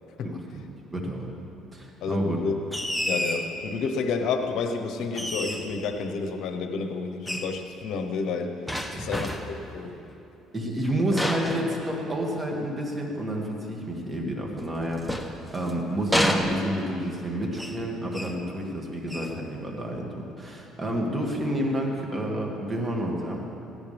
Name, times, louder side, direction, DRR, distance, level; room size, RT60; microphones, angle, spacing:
voice 1, 0.2-0.6 0.9-1.3 1.7-2.4 8.9-9.2 10.5-23.5, right 1 dB, 20° right, -1 dB, 2.5 m, -30 dB
voice 2, 2.0-2.5 3.0-8.6 9.0-10.0, left 4 dB, 70° left, 5 dB, 1.1 m, -30 dB
sound 1, 2.7-3.5 5.1-5.8 7.3-7.6 8.7-9.6 11.1-12.4 14.6-15.7 16.1-17.0 17.6-17.9 18.1-18.4 19.1-19.4, equal, ahead, 1.0 m, -30 dB
17.0 x 16.0 x 3.6 m, 2.8 s
cardioid pair, 105°, 0 cm